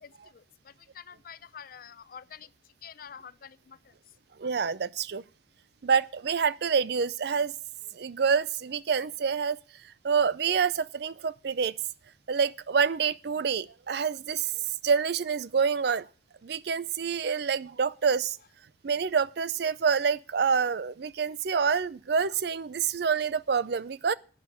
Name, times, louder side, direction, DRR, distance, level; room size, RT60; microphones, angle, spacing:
voice 1, 0.0-2.5 2.8-3.9, left 7 dB, 50° left, 0.5 m, -48 dB
voice 2, 4.4-5.2 5.8-7.5 7.9-9.6 10.0-11.7 12.3-16.1 16.4-18.4 18.8-24.1, right 6 dB, 60° right, 0.4 m, -27 dB
9.5 x 6.7 x 8.3 m
head